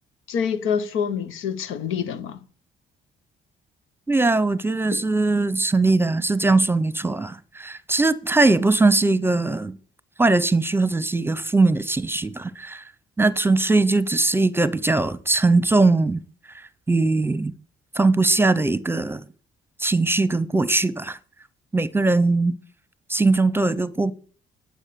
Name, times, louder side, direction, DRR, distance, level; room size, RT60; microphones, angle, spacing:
voice 1, 0.3-2.4 4.9-5.0, left 7 dB, 90° left, 1.0 m, -26 dB
voice 2, 4.1-9.8 10.2-12.9 13.2-16.2 16.5-17.5 17.9-19.2 19.8-21.2 21.7-22.5 23.1-24.1, right 3 dB, 10° right, 0.8 m, -20 dB
11.0 x 7.6 x 6.9 m
cardioid pair, 90°, 20 cm